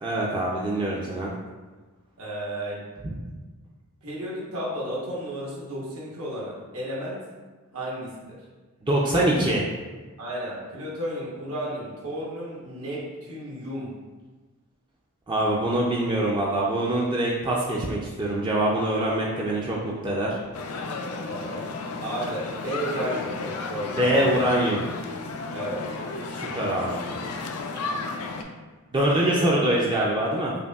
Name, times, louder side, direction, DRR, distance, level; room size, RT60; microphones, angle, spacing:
voice 1, 0.0-1.3 3.0-3.1 8.8-9.6 15.3-20.4 24.0-24.8 26.3-27.0 28.9-30.5, right 1 dB, 20° right, -3 dB, 0.3 m, -24 dB
voice 2, 2.2-2.9 4.0-7.2 7.7-8.4 10.2-13.9 21.3-21.7 22.0-24.4 25.5-25.8 29.1-29.5 30.5-30.6, right 1 dB, 80° right, -5 dB, 1.2 m, -33 dB
sound 1, 20.5-28.4, left 3 dB, 80° left, 0.4 m, -33 dB
5.1 x 2.6 x 2.3 m, 1.3 s
head